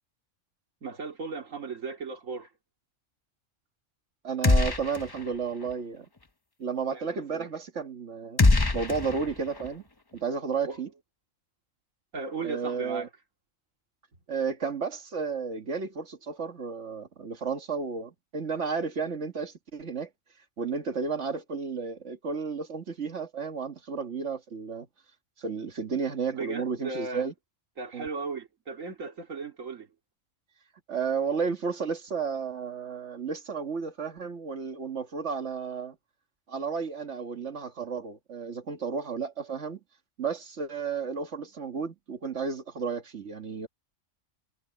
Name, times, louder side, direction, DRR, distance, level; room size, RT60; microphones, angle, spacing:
voice 1, 0.8-2.5 6.9-7.5 10.7-10.8 12.1-13.1 26.3-27.3 27.8-29.9, right 4 dB, 85° right, 2.8 m, -36 dB
voice 2, 4.2-6.1 6.6-8.4 8.7-9.8 10.1-10.9 12.4-13.1 14.3-20.1 20.6-24.9 25.4-27.3 27.9-28.1 30.9-36.0 36.5-39.8 40.2-43.7, right 5 dB, 65° right, 2.0 m, -32 dB
sound 1, 4.4-5.3 5.6-5.7 8.4-9.7, left 3 dB, 20° left, 0.8 m, -23 dB
omnidirectional pair, 1.3 m